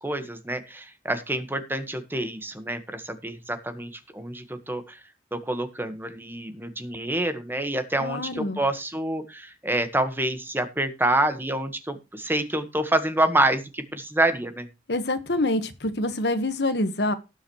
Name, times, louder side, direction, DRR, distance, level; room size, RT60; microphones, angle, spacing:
voice 1, 0.0-5.0 5.3-14.7, right 1 dB, 10° right, 9 dB, 1.5 m, -27 dB
voice 2, 8.0-8.6 14.9-17.1, left 1 dB, 65° left, 10 dB, 1.5 m, -26 dB
18.0 x 7.5 x 3.2 m, 0.27 s
head